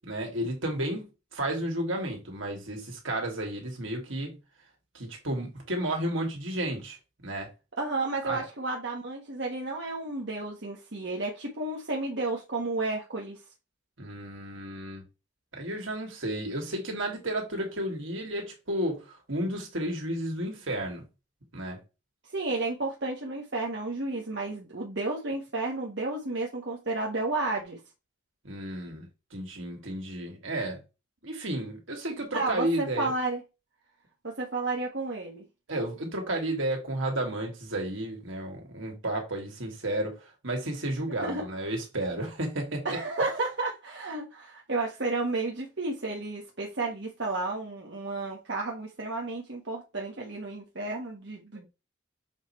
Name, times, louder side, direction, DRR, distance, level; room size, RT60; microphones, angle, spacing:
voice 1, 0.0-4.4 4.9-7.0 7.2-7.5 8.2-8.4 14.0-15.0 15.5-21.0 21.5-21.8 28.4-30.8 31.2-33.1 35.7-43.0, right 1 dB, 80° right, 2.5 m, -32 dB
voice 2, 7.8-13.4 22.3-27.8 32.3-33.4 34.2-35.4 41.2-41.4 42.8-51.7, right 2 dB, 60° right, 1.4 m, -32 dB
7.3 x 5.1 x 3.2 m
head